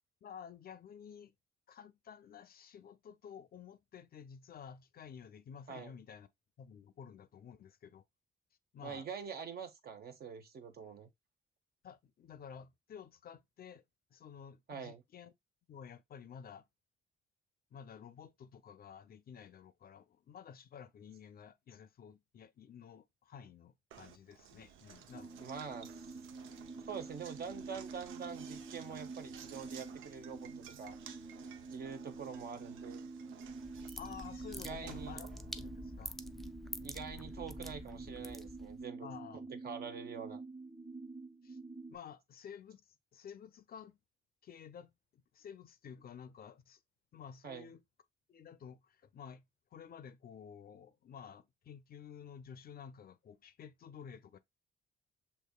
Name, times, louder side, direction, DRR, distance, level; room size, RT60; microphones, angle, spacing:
voice 1, 0.2-1.3 1.7-6.3 6.6-8.0 8.7-9.1 11.8-13.8 14.1-15.3 15.7-16.7 17.7-25.4 34.0-35.3 35.6-36.2 39.0-39.5 41.4-41.6 41.9-44.0 44.4-46.8 47.1-47.8 48.3-49.4 49.7-54.4, left 7 dB, 50° left, 0.5 m, -52 dB
voice 2, 8.8-11.1 14.7-15.0 25.4-26.1 26.9-31.0 31.7-33.0 34.6-35.2 36.8-39.1 39.5-40.4 47.4-47.7, right 6 dB, 50° right, 0.8 m, -45 dB
Knock, 23.9-36.1, right 9 dB, 80° right, 0.6 m, -55 dB
sound 1, 25.1-42.0, right 3 dB, 25° right, 1.2 m, -48 dB
sound 2, 33.4-38.8, left 1 dB, ahead, 0.3 m, -47 dB
6.6 x 2.8 x 2.2 m
cardioid pair, 90°, 20 cm